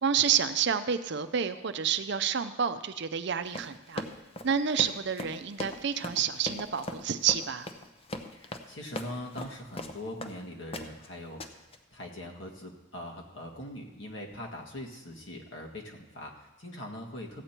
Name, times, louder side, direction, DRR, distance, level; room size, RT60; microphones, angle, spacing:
voice 1, 0.0-4.0 4.4-7.7, right 7 dB, 60° right, 11 dB, 0.6 m, -29 dB
Run, 3.5-10.4 10.7-11.1 11.4-11.8, left 2 dB, 30° left, 0.7 m, -39 dB
voice 2, 8.3-11.6 11.9-17.4, left 1 dB, 65° left, 0 dB, 1.8 m, -42 dB
15.5 x 8.2 x 4.4 m, 1.0 s
head